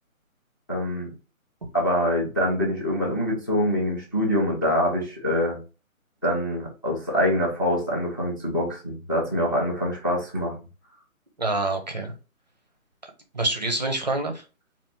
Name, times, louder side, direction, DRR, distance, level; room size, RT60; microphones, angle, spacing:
voice 1, 0.7-1.1 1.7-5.6 6.2-10.5, equal, 15° left, -1 dB, 0.5 m, -25 dB
voice 2, 11.4-12.1 13.0-14.4, right 2 dB, 30° right, 4 dB, 0.6 m, -27 dB
4.5 x 2.4 x 3.5 m, 0.32 s
figure-of-eight pair, 145°, 42 cm